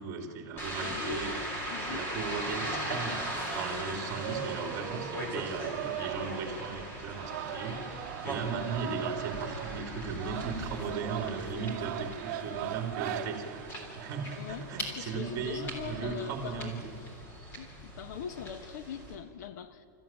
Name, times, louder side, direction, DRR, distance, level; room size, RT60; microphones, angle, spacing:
voice 1, 0.0-1.4 1.9-7.9 8.2-13.6 13.9-16.8, right 4 dB, 30° right, 4 dB, 2.7 m, -37 dB
sound 1, 0.6-19.2, right 1 dB, 20° left, 3.4 m, -40 dB
voice 2, 0.8-1.3 1.7-2.0 8.7-9.0 14.4-16.9 17.6-19.9, left 8 dB, 65° left, 11 dB, 1.2 m, -42 dB
sound 2, 3.9-17.0, right 12 dB, 45° right, 1.1 m, -40 dB
29.0 x 14.5 x 8.8 m, 2.7 s
supercardioid pair, 170°, 10 cm